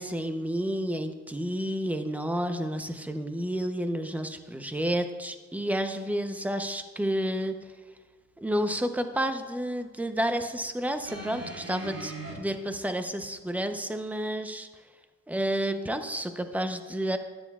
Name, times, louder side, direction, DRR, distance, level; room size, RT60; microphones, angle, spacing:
voice 1, 0.0-7.5 8.4-14.7 15.3-17.2, equal, 5° right, 7 dB, 0.8 m, -30 dB
sound 1, 11.0-12.3 13.3-13.4, right 3 dB, 50° right, 2.8 m, -39 dB
13.0 x 10.0 x 2.4 m, 1.4 s
cardioid pair, 90°, 30 cm